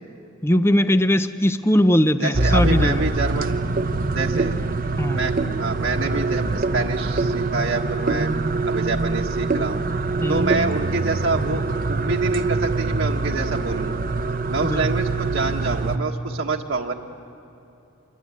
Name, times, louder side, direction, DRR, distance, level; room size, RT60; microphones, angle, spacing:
voice 1, 0.4-3.0 5.0-5.2 10.2-10.5 14.7-14.8, left 1 dB, 10° left, 10 dB, 0.5 m, -19 dB
voice 2, 2.2-3.5 4.1-4.6 5.1-8.3 8.7-9.8 10.3-11.6 11.9-14.1 14.5-16.9, right 3 dB, 70° right, 0 dB, 1.5 m, -26 dB
sound 1, 2.3-16.0, right 3 dB, 45° right, 0.8 m, -24 dB
27.0 x 22.0 x 9.8 m, 2.8 s
head